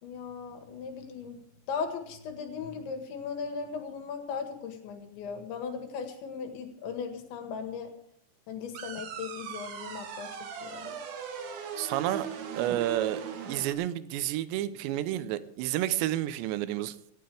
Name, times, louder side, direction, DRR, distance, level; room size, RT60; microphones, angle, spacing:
voice 1, 0.0-1.4 1.7-7.9 8.5-10.3 10.6-11.0, left 6 dB, 75° left, 5 dB, 4.0 m, -37 dB
sound 1, 8.7-13.7, right 7 dB, 60° right, 3.2 m, -39 dB
voice 2, 11.8-12.3 12.5-13.2 13.5-17.0, right 13 dB, 75° right, 13 dB, 2.9 m, -30 dB
17.5 x 15.5 x 3.5 m, 0.73 s
omnidirectional pair, 5.5 m